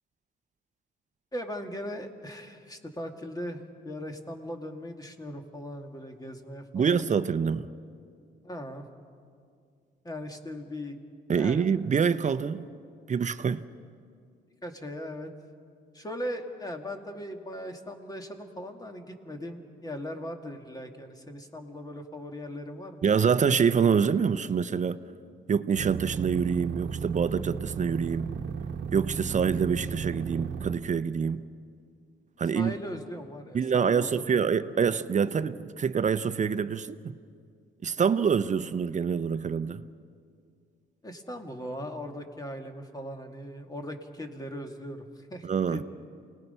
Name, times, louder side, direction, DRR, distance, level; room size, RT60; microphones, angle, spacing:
voice 1, 1.3-7.0 8.4-8.9 10.0-11.0 11.3-11.7 14.6-15.3 15.9-23.4 32.5-34.5 41.0-45.8, equal, 20° left, 2.1 m, -39 dB
voice 2, 6.7-7.7 11.3-12.6 13.1-13.6 23.0-25.0 25.5-28.3 28.9-31.4 32.4-32.7 33.5-37.1 37.8-39.8 45.4-45.8, right 6 dB, 35° right, 0.7 m, -26 dB
sound 1, 25.8-30.8, right 6 dB, 65° right, 1.1 m, -35 dB
28.0 x 19.0 x 5.6 m
cardioid pair, 90°, 20 cm